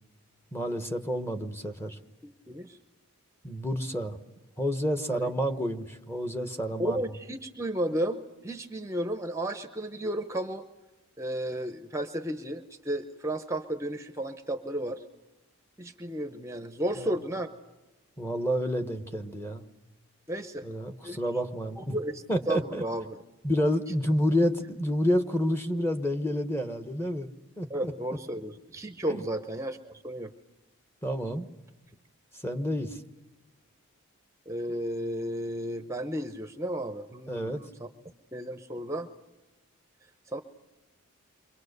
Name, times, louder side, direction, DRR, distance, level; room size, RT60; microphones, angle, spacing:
voice 1, 0.5-2.0 3.4-4.2 4.6-7.0 17.0-17.2 18.2-19.6 20.6-22.0 22.3-22.8 23.4-27.3 27.6-27.9 29.1-29.2 31.0-31.5 32.3-33.0 37.3-37.6, equal, 10° left, 7 dB, 1.1 m, -29 dB
voice 2, 2.2-2.8 5.1-5.3 6.8-10.7 11.2-15.0 15.8-17.5 20.3-20.7 21.0-21.2 21.8-23.2 27.7-30.3 34.5-37.9 38.3-39.1 40.3-40.4, right 1 dB, 15° right, 7 dB, 0.8 m, -33 dB
30.0 x 24.0 x 6.7 m, 1.1 s
head